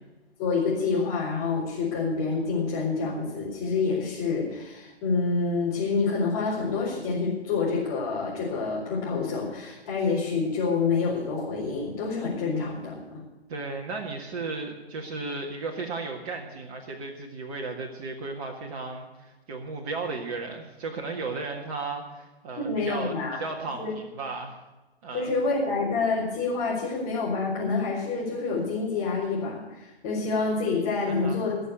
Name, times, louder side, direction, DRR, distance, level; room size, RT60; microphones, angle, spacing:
voice 1, 0.4-13.2 22.6-23.4 23.8-23.9 25.1-31.6, left 4 dB, 25° left, -7 dB, 4.4 m, -27 dB
voice 2, 13.5-24.6 25.0-25.3 31.0-31.4, right 3 dB, 35° right, 0 dB, 1.8 m, -35 dB
19.5 x 6.7 x 8.0 m, 1.1 s
figure-of-eight pair, 130°, 32 cm